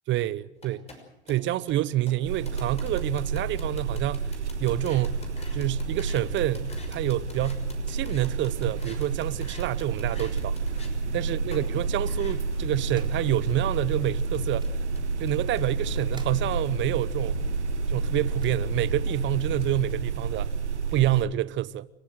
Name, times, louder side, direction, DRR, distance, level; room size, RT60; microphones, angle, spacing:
voice 1, 0.1-0.8 1.3-4.3 4.6-5.2 5.5-10.6 11.1-14.7 15.2-17.4 17.9-20.5 20.9-21.9, right 14 dB, 35° right, 0.9 m, -28 dB
sound 1, 0.6-10.9 11.5-11.6 12.1-16.5, left 3 dB, 20° left, 6.0 m, -48 dB
sound 2, 2.2-21.2, right 4 dB, 85° right, 1.7 m, -30 dB
sound 3, 12.9-13.2 14.5-14.8 16.0-16.4 18.3-18.5, right 3 dB, 15° right, 3.5 m, -49 dB
29.0 x 15.0 x 7.8 m
hypercardioid pair, 90°, 34 cm